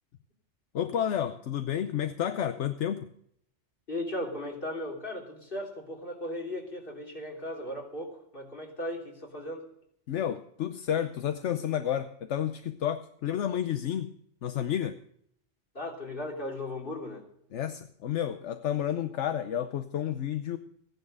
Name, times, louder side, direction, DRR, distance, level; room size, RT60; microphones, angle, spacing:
voice 1, 0.7-3.1 10.1-14.1 14.4-15.0 17.5-20.6, left 10 dB, 75° left, 9 dB, 1.1 m, -31 dB
voice 2, 3.9-9.7 15.7-17.2, left 1 dB, 50° left, 1 dB, 3.3 m, -37 dB
15.5 x 10.5 x 6.4 m, 0.69 s
omnidirectional pair, 1.2 m